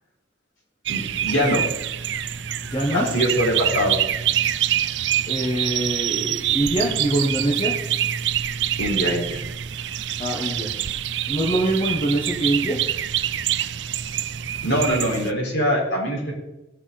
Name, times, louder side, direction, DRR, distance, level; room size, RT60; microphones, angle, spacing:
voice 1, 0.9-1.6 2.9-4.0 8.8-9.4 14.6-16.3, equal, 75° left, -3 dB, 4.4 m, -23 dB
sound 1, 0.9-15.3, right 11 dB, 65° right, 0.5 m, -26 dB
voice 2, 2.6-3.1 5.3-7.8 10.2-10.7 11.3-12.8, right 1 dB, 25° left, 0 dB, 1.2 m, -24 dB
16.0 x 6.0 x 4.2 m, 0.95 s
head